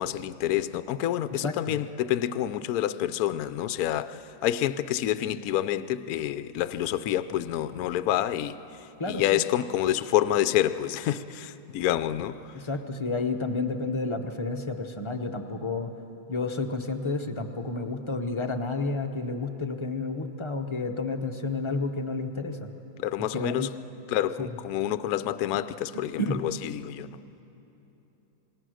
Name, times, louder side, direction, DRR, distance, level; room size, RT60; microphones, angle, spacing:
voice 1, 0.0-8.6 9.1-12.4 23.0-23.7 24.1-27.1, left 12 dB, 65° left, 13 dB, 0.9 m, -28 dB
voice 2, 1.3-1.8 9.0-9.4 12.5-15.9 16.3-22.7 23.3-23.7 24.4-24.5 25.9-26.4, left 3 dB, 35° left, 5 dB, 0.5 m, -31 dB
27.5 x 20.5 x 6.4 m, 3.0 s
omnidirectional pair, 2.0 m